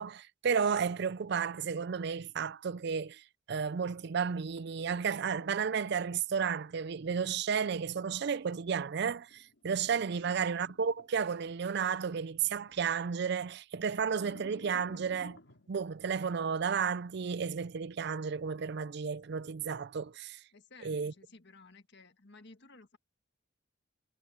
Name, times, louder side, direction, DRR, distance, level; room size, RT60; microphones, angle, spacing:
voice 1, 0.0-15.4 15.7-20.4 20.8-21.1, right 6 dB, 60° right, 0.4 m, -33 dB
sound 1, 4.3-5.7 7.7-12.9 13.3-13.5 14.1-15.7, left 2 dB, 75° left, 3.2 m, -57 dB
voice 2, 20.5-23.0, left 3 dB, 60° left, 1.8 m, -56 dB
head